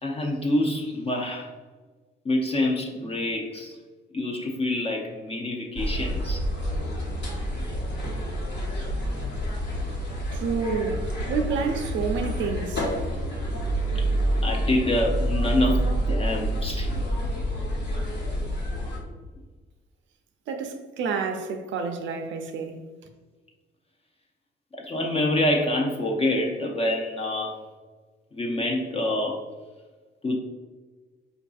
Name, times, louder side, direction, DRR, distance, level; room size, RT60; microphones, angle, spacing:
voice 1, 0.0-1.5 2.2-3.8 4.1-6.4 10.6-10.9 14.4-17.0 24.7-27.6 28.3-29.4 30.2-30.4, left 1 dB, 30° left, 0.5 m, -26 dB
sound 1, 5.8-19.0, equal, 65° left, 1.1 m, -28 dB
voice 2, 10.3-12.9 20.5-22.8, right 5 dB, 70° right, 0.5 m, -29 dB
4.6 x 2.6 x 2.3 m
cardioid pair, 90°, 20 cm